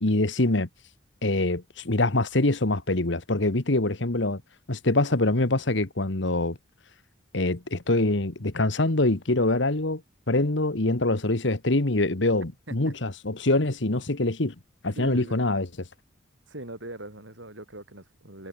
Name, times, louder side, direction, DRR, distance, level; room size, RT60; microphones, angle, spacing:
voice 1, 0.0-0.7 1.2-4.4 4.7-6.6 7.3-10.0 10.3-14.5 14.8-15.7, left 2 dB, 70° left, 1.6 m, -24 dB
voice 2, 14.9-15.5 16.5-18.5, right 1 dB, 75° right, 7.5 m, -41 dB
head